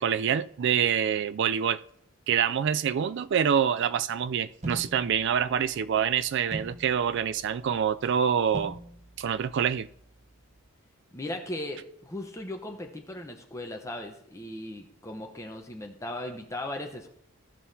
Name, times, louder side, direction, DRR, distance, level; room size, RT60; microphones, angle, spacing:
voice 1, 0.0-1.8 2.3-8.8 9.2-9.9, right 8 dB, 55° right, 0.3 m, -26 dB
sound 1, 4.6-10.7, right 2 dB, 30° right, 0.7 m, -43 dB
voice 2, 11.1-17.1, left 1 dB, 15° left, 0.9 m, -37 dB
16.0 x 5.6 x 2.8 m
head